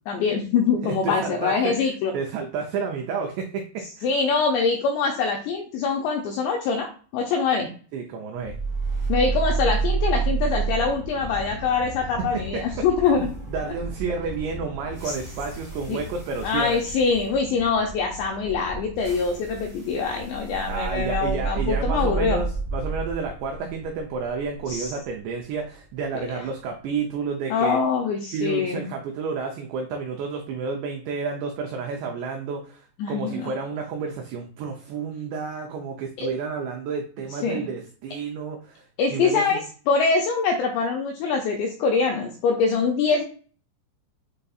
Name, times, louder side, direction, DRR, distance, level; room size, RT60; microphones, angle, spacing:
voice 1, 0.1-2.1 4.0-7.7 9.1-13.3 15.0-15.1 15.9-16.0 16.4-22.4 24.7-24.9 26.3-26.4 27.5-28.9 33.0-33.5 36.2-36.3 37.4-37.7 39.0-39.6 39.9-43.2, left 5 dB, 85° left, 2 dB, 2.5 m, -24 dB
voice 2, 0.8-4.1 7.9-8.6 12.2-16.8 20.7-27.8 28.3-39.6, right 5 dB, 85° right, 2 dB, 2.4 m, -31 dB
sound 1, 8.4-26.5, right 4 dB, 40° right, 0.8 m, -31 dB
7.6 x 2.6 x 2.3 m, 0.41 s
omnidirectional pair, 5.5 m